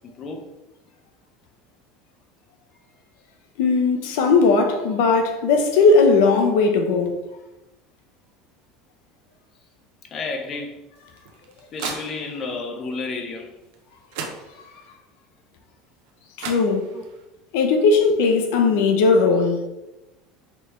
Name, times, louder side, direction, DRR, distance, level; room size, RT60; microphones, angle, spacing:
voice 1, 0.2-0.5 10.1-10.8 11.7-13.5 16.9-17.0, left 3 dB, 30° left, 0.6 m, -31 dB
voice 2, 3.6-7.2 16.4-16.9 17.5-19.7, left 4 dB, 75° left, 0.7 m, -18 dB
sound 1, 11.0-12.6 13.7-13.8 14.1-14.9 16.1-16.2 16.4-17.2, right 5 dB, 70° right, 0.7 m, -36 dB
4.5 x 3.3 x 3.2 m
cardioid pair, 165°, 0 cm